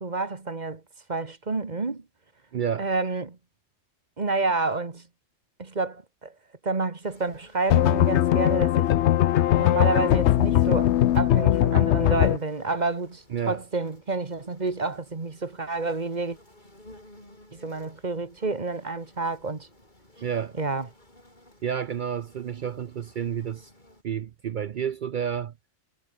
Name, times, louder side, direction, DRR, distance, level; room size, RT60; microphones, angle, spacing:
voice 1, 0.0-0.8 1.1-2.0 2.8-3.4 4.2-5.1 5.6-6.3 6.6-8.9 9.5-16.4 17.5-19.7 20.6-20.9, right 3 dB, 35° right, 1.7 m, -29 dB
voice 2, 2.5-2.9 13.3-13.6 20.2-20.5 21.6-23.7 24.0-25.5, right 8 dB, 65° right, 0.5 m, -30 dB
sound 1, 7.0-24.0, left 1 dB, 35° left, 7.5 m, -55 dB
sound 2, 7.7-12.4, left 12 dB, 65° left, 0.8 m, -20 dB
omnidirectional pair, 1.4 m